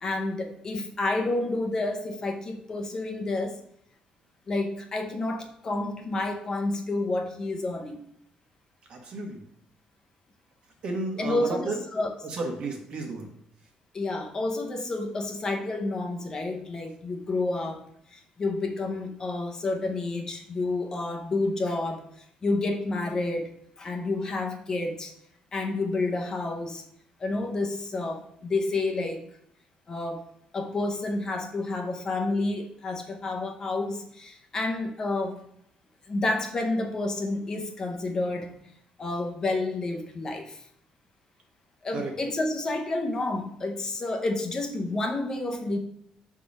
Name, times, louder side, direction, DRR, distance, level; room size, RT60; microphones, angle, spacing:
voice 1, 0.0-3.6 4.5-8.0 11.2-12.1 13.9-23.5 23.8-25.1 25.5-26.8 27.2-29.3 29.9-30.2 30.5-35.4 36.1-38.6 39.0-40.6 41.8-45.8, left 2 dB, 25° left, 3 dB, 0.6 m, -30 dB
voice 2, 8.9-9.4 10.8-11.8 12.3-13.3 41.9-42.1, right 3 dB, 45° right, 2 dB, 1.2 m, -32 dB
5.8 x 3.7 x 5.2 m, 0.72 s
cardioid pair, 170°, 2 cm